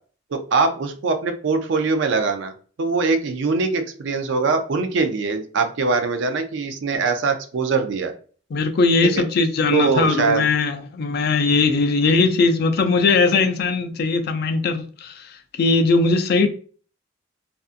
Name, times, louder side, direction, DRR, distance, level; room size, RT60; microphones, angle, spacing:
voice 1, 0.3-2.5 2.8-8.1 9.7-10.4, right 4 dB, 65° right, 0.4 m, -22 dB
voice 2, 8.5-16.5, left 3 dB, 50° left, 0.3 m, -20 dB
2.5 x 2.4 x 2.4 m
head